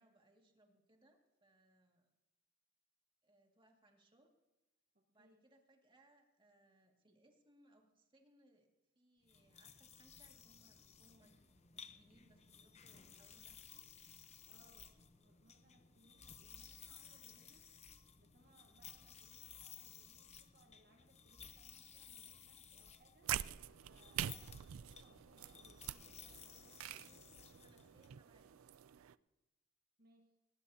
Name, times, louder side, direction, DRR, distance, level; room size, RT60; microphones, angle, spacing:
voice 1, 0.0-2.1 3.2-4.3 5.1-8.7 9.0-13.9 19.0-19.1 26.8-28.9, right 1 dB, 25° right, 1 dB, 2.1 m, -71 dB
voice 2, 4.9-5.4 14.5-17.8 18.2-23.3 23.9-27.0 30.0-30.4, right 1 dB, 50° right, 2 dB, 1.3 m, -70 dB
sound 1, 9.2-28.1, left 7 dB, 35° left, 0.8 m, -58 dB
sound 2, 23.2-29.1, right 11 dB, 90° right, 0.4 m, -45 dB
19.0 x 19.0 x 2.8 m, 1.1 s
head